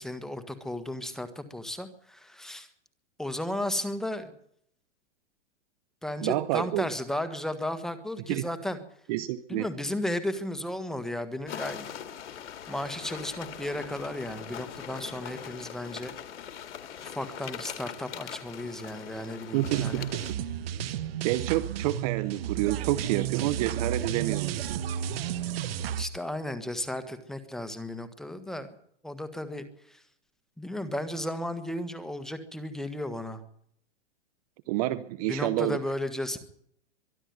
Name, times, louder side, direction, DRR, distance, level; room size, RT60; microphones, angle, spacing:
voice 1, 0.0-2.7 3.2-4.3 6.0-8.8 9.5-11.8 12.7-16.1 17.0-20.0 26.0-28.7 29.0-30.0 30.6-33.4 35.3-36.4, left 1 dB, ahead, 9 dB, 1.6 m, -34 dB
voice 2, 6.2-6.9 8.3-8.4 9.1-9.7 19.5-20.3 21.2-24.8 34.7-35.8, right 16 dB, 35° right, 16 dB, 0.8 m, -29 dB
sound 1, 11.5-20.3, left 9 dB, 75° left, 2.2 m, -41 dB
sound 2, 19.6-26.1, right 10 dB, 55° right, 1.6 m, -32 dB
24.0 x 11.5 x 9.5 m, 0.68 s
hypercardioid pair, 155°, 35 cm